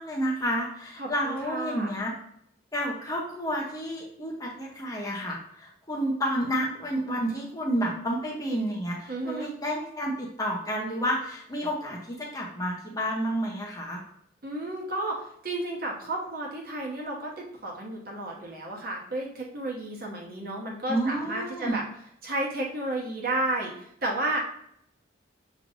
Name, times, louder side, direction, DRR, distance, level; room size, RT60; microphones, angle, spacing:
voice 1, 0.0-2.1 2.7-14.0 20.9-21.8, equal, 20° left, -2 dB, 0.7 m, -30 dB
voice 2, 1.0-1.9 9.1-9.5 14.4-21.8 22.2-24.4, right 2 dB, 45° right, -2 dB, 1.1 m, -32 dB
6.4 x 3.1 x 2.6 m, 0.71 s
head